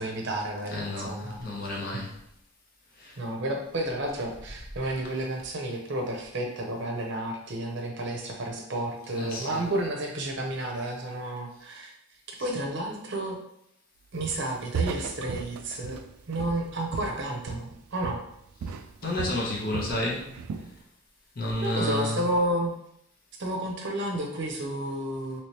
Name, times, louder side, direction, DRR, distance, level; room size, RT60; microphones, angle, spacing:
voice 1, 0.0-1.4 1.9-2.0 3.2-11.9 12.4-13.4 14.1-16.0 16.3-18.2 21.6-22.7 23.4-25.4, right 1 dB, 55° right, 1 dB, 0.6 m, -31 dB
voice 2, 0.7-2.1 3.0-3.1 9.1-9.6 19.0-20.3 21.4-22.2, left 1 dB, 45° left, -2 dB, 0.8 m, -30 dB
Walk footsteps, 14.2-14.5 14.7-17.8 18.0-18.3 18.6-20.0 20.3-20.7, right 5 dB, 85° right, 0.3 m, -35 dB
3.2 x 3.0 x 2.9 m, 0.76 s
head